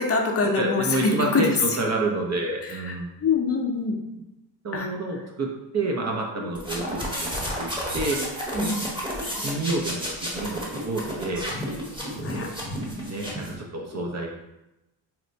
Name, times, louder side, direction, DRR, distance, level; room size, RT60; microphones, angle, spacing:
voice 1, 0.0-1.8 2.6-2.9 3.2-4.0 4.7-4.9 6.4-6.6 8.6-8.9 12.2-12.5 13.9-14.1, left 4 dB, 30° left, 2 dB, 0.5 m, -25 dB
voice 2, 0.5-3.1 4.6-5.5 5.7-8.2 8.5-8.7 9.4-11.5 12.2-12.5 13.0-14.3, right 2 dB, 35° right, 0 dB, 0.6 m, -29 dB
sound 1, 6.5-13.6, equal, 10° right, 1.0 m, -31 dB
4.3 x 2.1 x 2.6 m, 0.95 s
cardioid pair, 85°, 47 cm